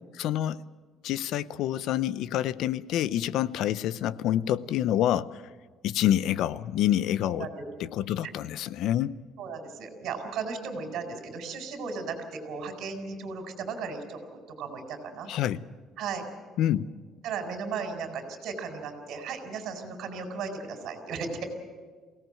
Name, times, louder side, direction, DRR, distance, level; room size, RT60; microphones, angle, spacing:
voice 1, 0.1-0.6 1.0-5.4 5.8-7.5 7.8-9.1 15.3-15.6 16.6-16.8, left 12 dB, 65° left, 17 dB, 0.7 m, -27 dB
voice 2, 7.2-7.6 8.2-8.3 9.4-15.3 16.0-16.3 17.2-21.4, right 5 dB, 55° right, 6 dB, 4.4 m, -36 dB
23.5 x 17.5 x 7.8 m, 1.5 s
cardioid pair, 160°, 0 cm